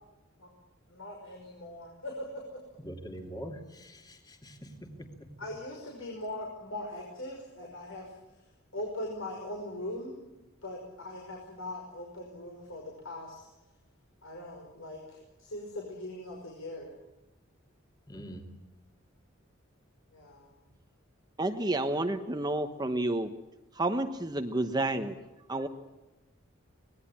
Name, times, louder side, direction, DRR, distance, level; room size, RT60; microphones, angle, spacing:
voice 1, 0.9-2.6 5.4-8.1 8.7-10.2 10.6-13.5 14.2-16.9 20.1-20.5, left 1 dB, 70° left, 0 dB, 5.5 m, -40 dB
voice 2, 2.8-5.3 18.1-18.5, equal, 20° left, 4 dB, 2.8 m, -44 dB
voice 3, 21.4-23.3 23.7-25.2 25.5-25.7, right 2 dB, 20° right, 7 dB, 1.1 m, -30 dB
25.0 x 19.5 x 8.8 m, 1.0 s
head